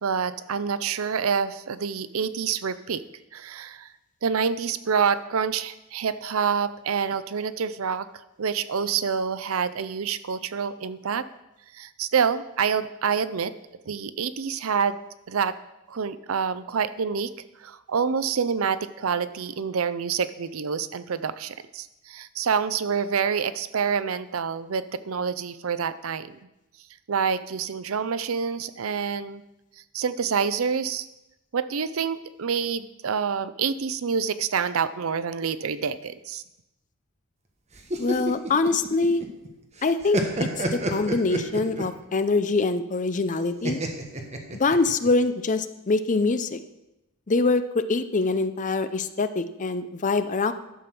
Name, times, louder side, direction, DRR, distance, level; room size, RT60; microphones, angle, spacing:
voice 1, 0.0-3.0 3.3-3.9 4.2-8.1 8.4-11.3 11.7-13.5 13.9-15.0 15.3-15.5 15.9-17.3 17.6-26.3 27.1-29.4 29.9-31.1 31.5-36.4, right 6 dB, 80° right, 14 dB, 0.6 m, -27 dB
sound 1, 37.7-39.5 39.8-42.0 43.6-45.1, right 1 dB, 30° right, 1.2 m, -29 dB
voice 2, 38.0-39.2 39.8-43.8 44.5-46.6 47.3-50.5, left 3 dB, 35° left, 11 dB, 0.6 m, -24 dB
11.0 x 6.9 x 5.9 m, 0.92 s
head